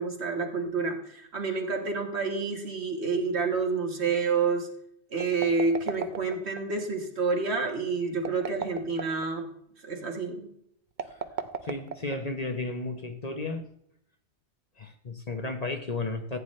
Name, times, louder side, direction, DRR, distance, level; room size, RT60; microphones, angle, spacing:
voice 1, 0.0-4.7 5.1-9.5 9.8-10.5, right 4 dB, 65° right, 3 dB, 1.9 m, -29 dB
sound 1, 5.1-6.6 8.1-9.3 10.9-12.4, right 6 dB, 45° right, 0.8 m, -35 dB
voice 2, 11.6-13.7 14.8-16.4, left 3 dB, 35° left, 5 dB, 1.0 m, -33 dB
14.5 x 9.1 x 3.2 m, 0.71 s
omnidirectional pair, 1.2 m